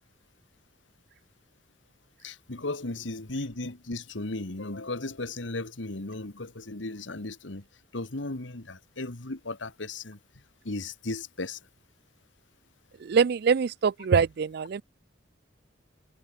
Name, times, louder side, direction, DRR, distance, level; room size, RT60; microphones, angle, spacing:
voice 1, 2.2-7.7 7.9-10.2 10.6-11.6, left 2 dB, 85° left, 1.9 m, -35 dB
voice 2, 13.0-14.8, right 6 dB, 60° right, 0.4 m, -24 dB
head